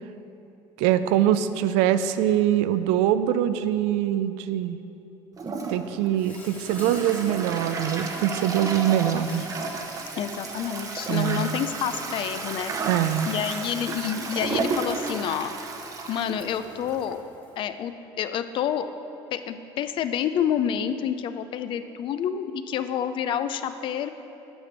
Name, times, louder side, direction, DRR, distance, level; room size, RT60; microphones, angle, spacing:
voice 1, 0.8-4.8 5.7-9.4 11.1-11.5 12.8-13.3, right 11 dB, 90° right, 12 dB, 0.4 m, -23 dB
Toilet flush, 5.4-17.2, right 3 dB, 35° right, 0.8 m, -33 dB
Insect, 6.1-17.6, left 2 dB, 15° left, 1.1 m, -47 dB
voice 2, 10.2-12.7 13.3-15.5 16.1-17.2 17.6-18.9 19.3-24.1, left 9 dB, 50° left, 11 dB, 0.4 m, -28 dB
8.8 x 5.1 x 7.4 m, 2.9 s
cardioid pair, 125°, 11 cm